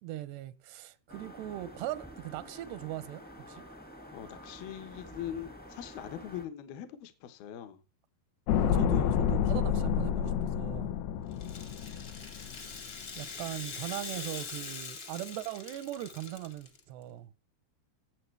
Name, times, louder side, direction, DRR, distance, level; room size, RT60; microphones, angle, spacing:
voice 1, 0.0-3.7 8.5-11.0 12.6-12.7 13.2-17.3, right 14 dB, 90° right, 2.9 m, -39 dB
sound 1, 1.1-6.5, equal, 10° left, 0.5 m, -49 dB
voice 2, 4.1-7.8, left 10 dB, 75° left, 3.0 m, -42 dB
sound 2, 8.5-12.8 13.0-13.1, left 9 dB, 90° left, 2.9 m, -29 dB
Rattle (instrument), 11.3-16.8, left 5 dB, 50° left, 1.0 m, -43 dB
17.5 x 7.3 x 3.3 m
omnidirectional pair, 4.6 m